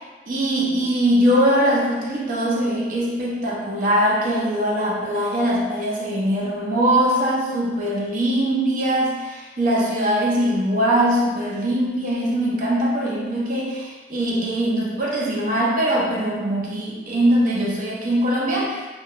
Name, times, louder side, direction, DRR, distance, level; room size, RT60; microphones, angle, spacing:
voice 1, 0.3-18.7, right 1 dB, 50° right, -4 dB, 0.5 m, -21 dB
2.2 x 2.2 x 2.8 m, 1.3 s
head